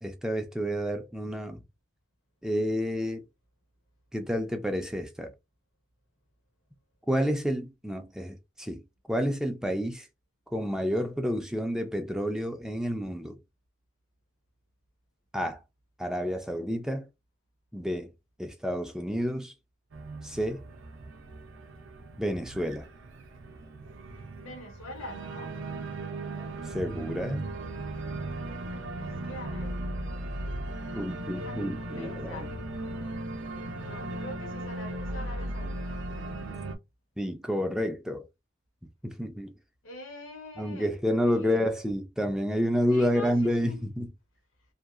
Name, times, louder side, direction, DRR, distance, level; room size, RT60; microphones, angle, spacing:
voice 1, 0.0-1.6 2.4-3.2 4.1-5.3 7.1-8.8 9.1-10.1 10.5-13.4 15.3-15.6 16.0-17.1 17.7-18.1 18.4-19.5 20.2-20.6 22.2-22.9 26.6-27.5 31.0-32.5 37.2-38.3 39.0-39.5 40.6-44.1, equal, 5° right, 0.3 m, -29 dB
Organ, 19.9-36.8, right 2 dB, 65° right, 0.5 m, -37 dB
voice 2, 24.1-25.5 29.0-29.8 30.8-31.7 32.0-32.5 33.8-36.0 39.8-41.7 42.9-43.8, left 1 dB, 85° left, 1.0 m, -44 dB
2.6 x 2.3 x 2.4 m
head